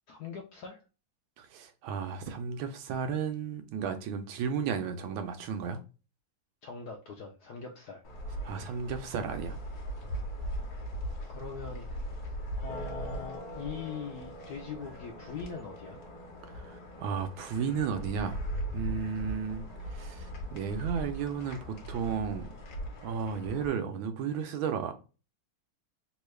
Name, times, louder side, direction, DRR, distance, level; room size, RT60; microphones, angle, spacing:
voice 1, 0.1-0.8 6.6-8.0 11.3-12.1 12.6-16.0, left 6 dB, 75° left, 0.9 m, -42 dB
voice 2, 1.4-5.8 8.4-9.6 16.5-18.4 18.7-19.6 19.9-22.5 23.0-24.9, right 6 dB, 90° right, 1.4 m, -33 dB
sound 1, 8.0-23.7, right 1 dB, 55° left, 1.3 m, -39 dB
3.5 x 2.3 x 3.1 m
omnidirectional pair, 2.1 m